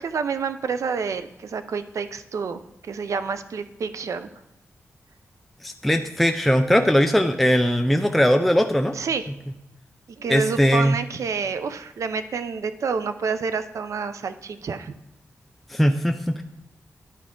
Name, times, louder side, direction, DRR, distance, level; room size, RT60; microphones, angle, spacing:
voice 1, 0.0-4.3 8.9-9.3 10.2-14.9, right 5 dB, 70° right, 10 dB, 0.5 m, -28 dB
voice 2, 5.6-8.9 10.3-11.0 15.7-16.4, equal, ahead, 5 dB, 0.4 m, -20 dB
11.0 x 4.5 x 3.7 m, 0.92 s
wide cardioid pair, 100°, 5 cm